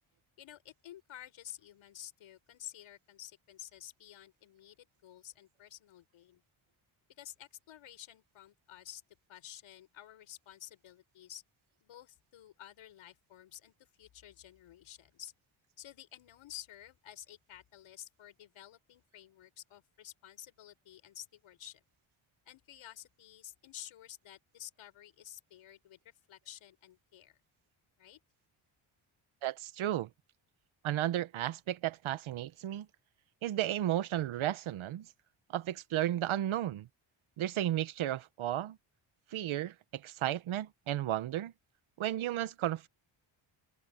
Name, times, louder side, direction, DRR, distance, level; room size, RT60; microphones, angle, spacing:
voice 1, 0.4-6.4 7.2-9.0 9.3-11.4 11.8-15.3 15.8-21.8 22.5-27.4 28.0-28.2, left 11 dB, 80° left, 6.1 m, -51 dB
voice 2, 29.4-30.1 30.8-32.9 33.4-35.1 35.5-36.9 37.4-38.8 39.3-41.5 42.0-42.9, right 12 dB, 75° right, 1.2 m, -33 dB
cardioid pair, 95°, 49 cm